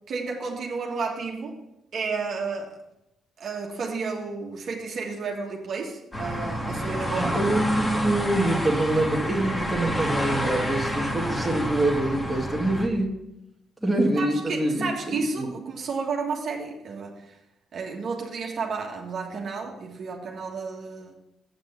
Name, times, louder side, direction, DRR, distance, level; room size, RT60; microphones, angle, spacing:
voice 1, 0.1-1.6 1.9-2.7 3.4-7.4 14.2-17.3 17.7-21.1, right 4 dB, 55° right, 0 dB, 1.5 m, -32 dB
sound 1, 6.1-12.9, equal, 15° left, 1.5 m, -29 dB
voice 2, 7.2-13.2 13.8-15.5, right 1 dB, 5° right, -1 dB, 1.9 m, -25 dB
8.1 x 6.1 x 5.7 m, 0.87 s
cardioid pair, 90°, 0 cm